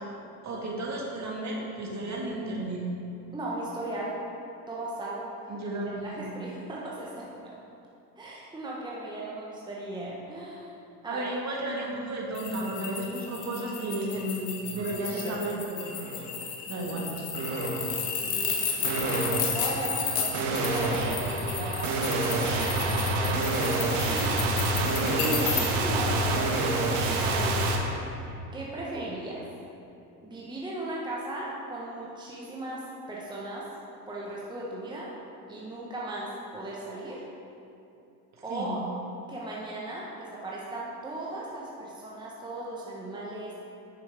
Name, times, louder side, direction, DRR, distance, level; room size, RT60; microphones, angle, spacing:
voice 1, 0.4-2.8 5.5-6.3 11.1-15.9 16.7-17.1 25.0-25.5 38.5-38.7, right 1 dB, 35° right, -2 dB, 1.8 m, -33 dB
voice 2, 3.3-4.1 4.7-5.3 6.0-7.3 8.2-10.7 11.0-11.3 18.0-19.0 19.5-24.4 25.8-26.5 27.2-27.8 28.5-29.4 30.2-33.7 34.1-35.1 35.5-37.2 38.4-38.8 39.3-43.5, right 2 dB, 10° right, -5 dB, 1.3 m, -37 dB
sound 1, 12.3-25.7, left 7 dB, 65° left, 1.4 m, -33 dB
sound 2, 14.0-14.2 14.6-15.3 15.8-16.3 17.3-18.0 18.8-27.8, right 2 dB, 55° right, 1.3 m, -28 dB
9.3 x 6.8 x 3.6 m, 2.7 s
hypercardioid pair, 70°, 49 cm